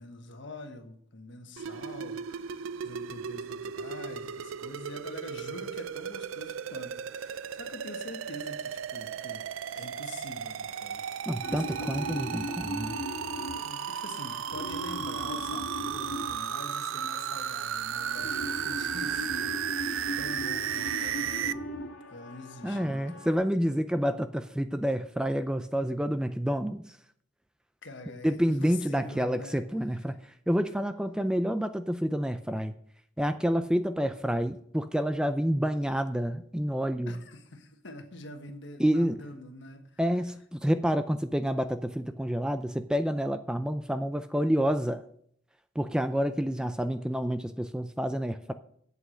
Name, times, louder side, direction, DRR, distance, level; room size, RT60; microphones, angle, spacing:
voice 1, 0.0-9.5 9.7-13.3 13.6-21.6 22.1-23.3 27.8-29.7 37.0-40.0 46.4-46.9, left 2 dB, 65° left, 6 dB, 1.4 m, -45 dB
sound 1, 1.6-21.5, right 8 dB, 80° right, 0.4 m, -35 dB
voice 2, 11.3-13.0 22.6-27.0 28.2-32.7 33.2-37.2 38.8-39.2 40.0-45.0 45.8-48.5, equal, 5° right, 10 dB, 0.4 m, -28 dB
sound 2, 11.4-23.3, left 1 dB, 80° left, 1.8 m, -39 dB
8.3 x 8.1 x 6.3 m, 0.65 s
head